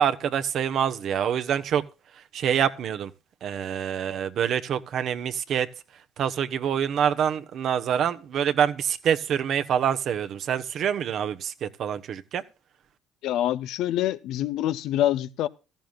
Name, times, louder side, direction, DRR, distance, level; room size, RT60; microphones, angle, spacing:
voice 1, 0.0-1.8 2.3-3.1 3.4-5.7 6.2-12.4, right 8 dB, 60° right, 1.2 m, -26 dB
voice 2, 13.2-15.5, left 12 dB, 70° left, 0.8 m, -26 dB
16.0 x 14.0 x 2.5 m
hypercardioid pair, 70°, 0 cm